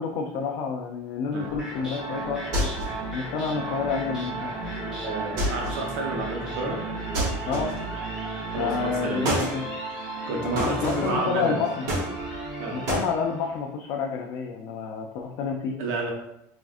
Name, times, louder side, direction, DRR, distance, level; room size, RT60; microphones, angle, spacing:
voice 1, 0.0-2.6 3.1-4.5 7.5-7.7 8.6-9.6 10.4-11.9 12.7-15.8, left 5 dB, 45° left, 1 dB, 0.3 m, -29 dB
sound 1, 1.3-13.6, right 3 dB, 5° right, 0.8 m, -34 dB
sound 2, 2.5-3.1 5.4-5.9 7.1-8.0 9.2-9.6 10.6-11.2 11.9-12.5 12.9-13.1, right 1 dB, 50° right, 1.0 m, -28 dB
voice 2, 5.0-6.8 8.5-9.3 9.9-11.6 12.6-12.8 15.8-16.1, right 2 dB, 65° right, 1 dB, 0.8 m, -30 dB
3.5 x 2.4 x 2.4 m, 0.81 s
cardioid pair, 165°, 8 cm